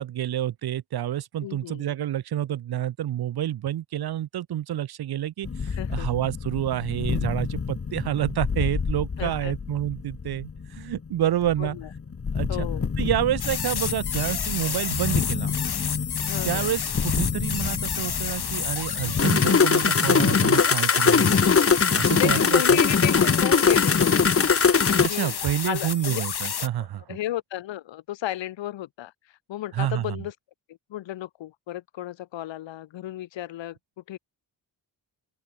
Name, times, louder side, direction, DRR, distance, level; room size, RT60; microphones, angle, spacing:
voice 1, 0.0-11.8 12.3-12.7 13.0-15.6 16.5-21.4 21.9-22.8 25.0-27.2 29.7-30.2, right 12 dB, 60° right, 0.6 m, -28 dB
voice 2, 1.4-1.9 5.7-6.1 9.2-9.5 11.6-11.9 12.5-12.9 16.3-16.7 22.2-24.4 25.1-25.4 25.7-26.2 26.8-29.1 29.5-30.3 30.9-33.8 34.1-34.2, left 13 dB, 85° left, 0.7 m, -33 dB
sound 1, 5.4-25.1, left 5 dB, 30° left, 1.0 m, -24 dB
sound 2, 13.4-26.7, left 7 dB, 60° left, 1.8 m, -31 dB
open air
cardioid pair, 70°, 44 cm